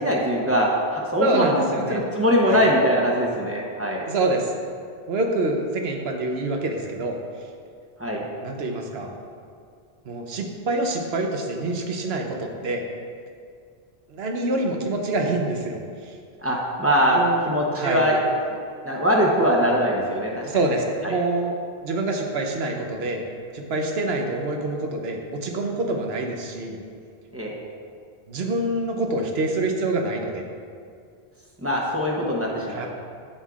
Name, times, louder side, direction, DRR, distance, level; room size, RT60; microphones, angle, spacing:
voice 1, 0.0-1.6 1.9-4.0 8.0-8.2 16.4-18.2 18.8-20.4 20.7-21.2 27.3-27.5 31.6-32.9, equal, 15° right, -3 dB, 0.9 m, -22 dB
voice 2, 1.2-2.0 2.5-2.6 4.0-4.5 5.1-7.2 8.4-9.1 10.0-12.8 14.1-15.8 16.1-16.2 17.1-18.0 20.3-21.5 21.8-23.2 23.5-26.8 28.3-30.4 32.7-32.9, right 2 dB, 75° right, 2 dB, 1.1 m, -26 dB
9.3 x 7.2 x 2.4 m, 2.3 s
omnidirectional pair, 1.1 m